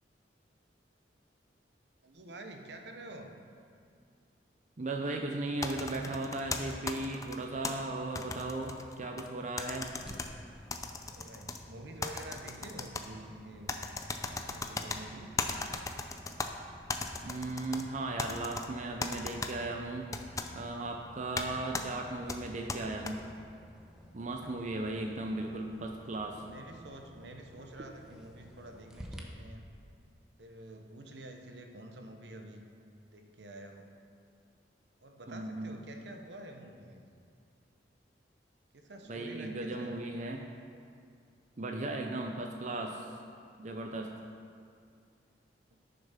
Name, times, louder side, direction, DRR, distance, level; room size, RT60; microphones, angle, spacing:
voice 1, 2.0-3.4 11.1-13.7 14.3-15.3 24.4-24.6 26.4-29.6 30.4-32.7 33.1-33.9 35.0-37.1 38.7-40.0 45.7-45.8, right 1 dB, 75° right, 4 dB, 1.0 m, -48 dB
voice 2, 4.8-9.9 17.2-20.1 20.5-23.2 24.1-26.4 35.3-35.8 39.1-40.4 41.6-43.1 43.6-44.1, right 2 dB, 45° right, 2 dB, 0.7 m, -36 dB
sound 1, 5.6-7.7 8.2-9.3 9.6-10.3 10.7-11.6 12.0-13.1 13.7-15.0 15.4-16.5 16.9-17.8 18.2-18.7 19.0-19.5 20.1-20.5 21.4-21.5 21.7-21.9 22.3-23.1, left 3 dB, 20° left, 0.6 m, -36 dB
sound 2, 9.8-29.2, equal, 5° right, 0.9 m, -54 dB
11.0 x 6.8 x 5.8 m, 2.3 s
head